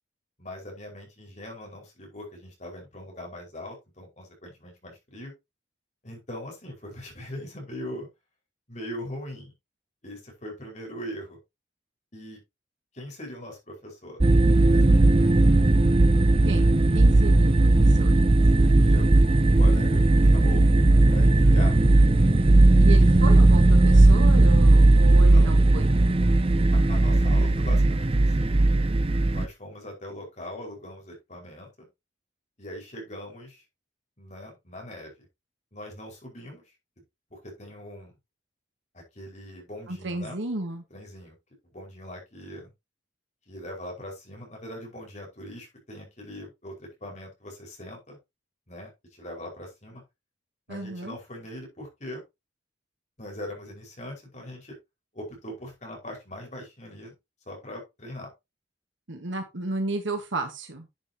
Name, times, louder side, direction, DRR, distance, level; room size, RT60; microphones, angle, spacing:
voice 1, 0.4-5.3 6.0-8.1 8.7-9.5 10.0-11.4 12.1-12.4 12.9-14.2 14.5-15.4 18.6-19.3 19.6-20.7 21.1-21.8 23.0-23.2 25.1-25.6 26.9-28.6 29.3-31.9 32.6-33.6 34.2-35.3 35.7-36.6 37.3-38.1 38.9-40.4 40.9-41.4 41.6-42.7 43.5-48.2 48.7-50.0 50.7-52.2 53.2-54.8 55.1-57.1 57.5-58.3, left 1 dB, 40° left, 0 dB, 5.2 m, -41 dB
sound 1, 14.2-29.5, right 2 dB, 30° right, 0.6 m, -17 dB
voice 2, 16.9-18.2 22.8-25.9 39.9-40.8 50.7-51.2 59.1-60.9, right 2 dB, 85° right, 5 dB, 1.6 m, -33 dB
11.0 x 7.9 x 2.9 m, 0.22 s
head